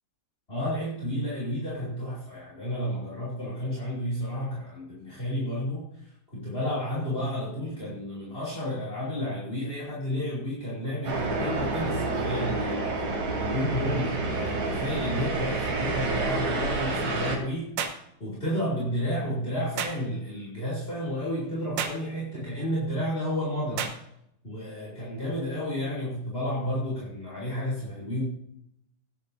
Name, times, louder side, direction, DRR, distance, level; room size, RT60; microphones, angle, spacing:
voice 1, 0.5-12.9 13.3-17.7 18.2-23.9 24.4-28.2, equal, 15° left, -6 dB, 2.3 m, -31 dB
sound 1, 11.0-17.4, right 3 dB, 45° right, 4.1 m, -29 dB
sound 2, 17.8-18.0 19.8-20.0 21.8-22.0 23.8-24.0, right 7 dB, 85° right, 3.5 m, -31 dB
18.5 x 9.6 x 2.7 m, 0.75 s
omnidirectional pair, 4.9 m